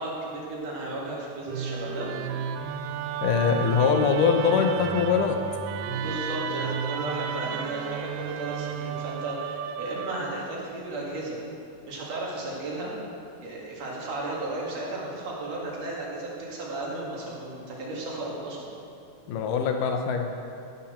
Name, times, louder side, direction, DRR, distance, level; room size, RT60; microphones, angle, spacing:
voice 1, 0.0-2.1 5.9-11.4 11.9-12.9 13.4-18.8, right 2 dB, 55° right, -4 dB, 3.0 m, -34 dB
Musical instrument, 1.5-10.7, right 7 dB, 85° right, 2.2 m, -33 dB
voice 2, 3.2-5.4 19.3-20.3, left 6 dB, 80° left, 4 dB, 2.3 m, -23 dB
16.0 x 5.7 x 6.5 m, 2.6 s
omnidirectional pair, 3.7 m